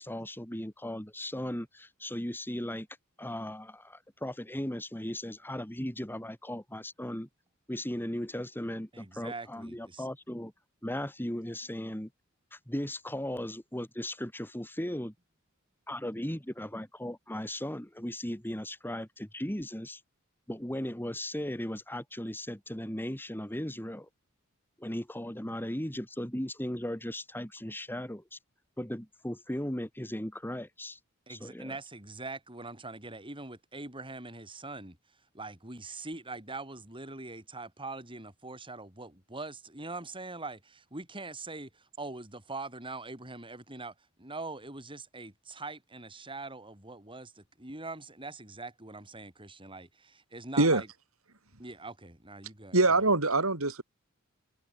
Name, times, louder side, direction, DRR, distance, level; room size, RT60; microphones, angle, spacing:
voice 1, 0.0-2.9 3.2-7.3 7.7-10.5 10.8-12.1 12.5-15.1 15.9-20.0 20.5-24.1 24.8-28.4 28.8-31.0 31.3-31.7, left 1 dB, 10° left, 2.7 m, -37 dB
voice 2, 8.9-10.0 31.3-35.0 35.3-50.9 51.6-52.8, right 3 dB, 25° right, 6.9 m, -43 dB
voice 3, 52.7-53.8, right 2 dB, 75° right, 4.8 m, -23 dB
head